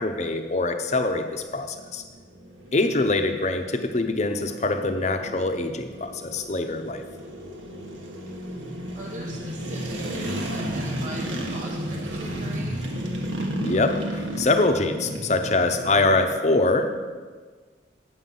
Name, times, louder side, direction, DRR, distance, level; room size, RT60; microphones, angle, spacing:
voice 1, 0.0-2.0 2.7-7.0 13.6-16.9, left 2 dB, 35° left, 7 dB, 0.7 m, -24 dB
sound 1, 1.1-16.2, right 1 dB, 80° right, 1.3 m, -33 dB
voice 2, 8.2-8.7 8.9-12.8, right 1 dB, 40° right, -2 dB, 0.9 m, -41 dB
9.1 x 7.5 x 5.5 m, 1.5 s
head